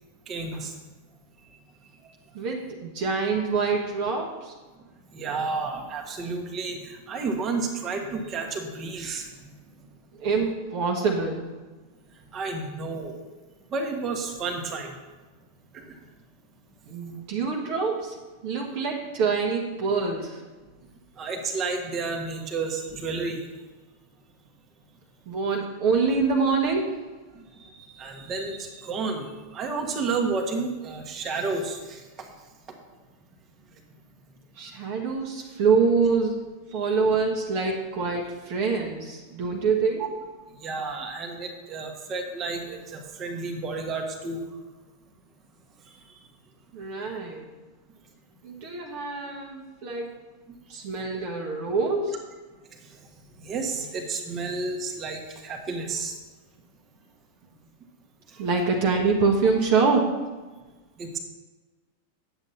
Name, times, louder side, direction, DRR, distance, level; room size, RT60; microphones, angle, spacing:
voice 1, 0.3-0.7 5.1-9.3 12.3-13.2 13.7-14.9 15.7-15.9 21.2-23.4 27.6-29.3 29.5-32.3 36.7-37.0 40.0-40.1 40.6-44.4 53.4-56.1 58.3-58.4 61.0-61.2, right 4 dB, 30° right, 3 dB, 1.4 m, -31 dB
voice 2, 2.3-4.5 10.1-11.5 16.9-20.4 25.3-27.1 34.5-36.4 36.7-40.0 46.7-47.4 48.4-50.2 50.7-52.2 58.4-60.1, right 4 dB, 45° right, 1 dB, 1.2 m, -25 dB
9.5 x 7.8 x 4.1 m, 1.3 s
figure-of-eight pair, 90°, 0 cm